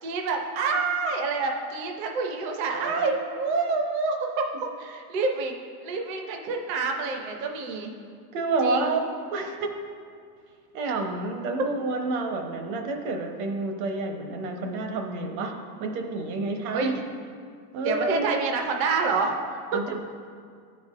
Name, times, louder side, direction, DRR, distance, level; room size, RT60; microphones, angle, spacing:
voice 1, 0.0-4.5 4.8-7.9 8.6-8.9 16.7-17.0 17.8-19.8, right 4 dB, 30° right, 3 dB, 0.4 m, -27 dB
voice 2, 2.7-3.1 8.3-9.7 10.7-17.0 17.7-18.2 19.7-20.0, right 3 dB, 70° right, 4 dB, 1.0 m, -29 dB
13.0 x 4.8 x 2.4 m, 2.2 s
supercardioid pair, 175°, 44 cm